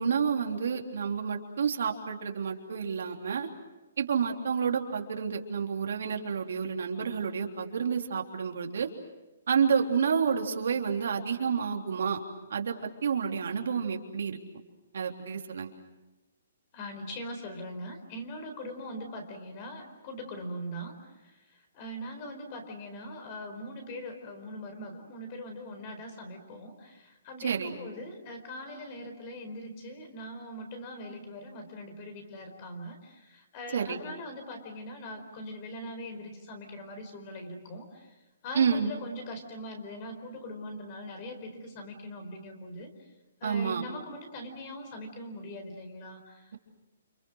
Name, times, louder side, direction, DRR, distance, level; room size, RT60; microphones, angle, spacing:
voice 1, 0.0-3.5 4.0-8.9 9.5-12.2 12.5-14.4 14.9-15.7 27.4-27.7 33.7-34.0 38.5-38.9 43.4-43.8, right 6 dB, 65° right, 2 dB, 3.4 m, -29 dB
voice 2, 16.7-20.9 21.2-38.1 38.4-42.9 43.4-46.5, equal, 30° left, 6 dB, 4.5 m, -41 dB
29.5 x 28.0 x 6.4 m, 1.1 s
hypercardioid pair, 170°, 0 cm